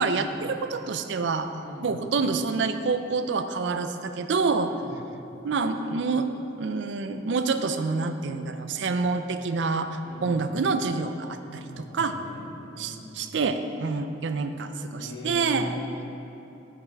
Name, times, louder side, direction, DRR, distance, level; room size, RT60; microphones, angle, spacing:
voice 1, 0.0-1.5 1.8-4.7 5.4-12.2 12.8-15.8, right 4 dB, 75° right, 8 dB, 0.4 m, -27 dB
voice 2, 1.6-1.9 4.7-4.9 10.0-10.5 11.5-13.3 15.0-16.0, equal, 90° left, -3 dB, 1.6 m, -40 dB
8.3 x 5.6 x 4.6 m, 2.8 s
head